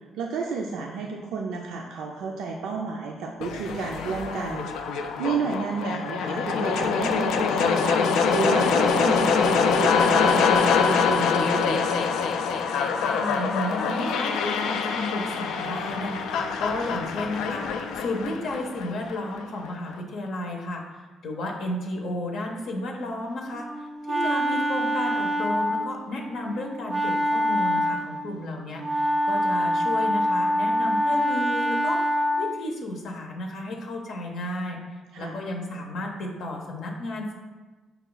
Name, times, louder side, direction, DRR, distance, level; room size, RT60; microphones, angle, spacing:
voice 1, 0.2-4.7 5.2-12.1 35.1-35.4, right 4 dB, 85° right, 0 dB, 0.4 m, -31 dB
sound 1, 3.4-19.4, left 5 dB, 85° left, 0.3 m, -24 dB
voice 2, 13.0-20.8 21.2-37.3, left 1 dB, 70° left, 1 dB, 0.7 m, -33 dB
Wind instrument woodwind instrument, 23.5-32.6, equal, 10° right, 0.4 m, -25 dB
5.4 x 2.3 x 3.9 m, 1.3 s
cardioid pair, 95°, 0 cm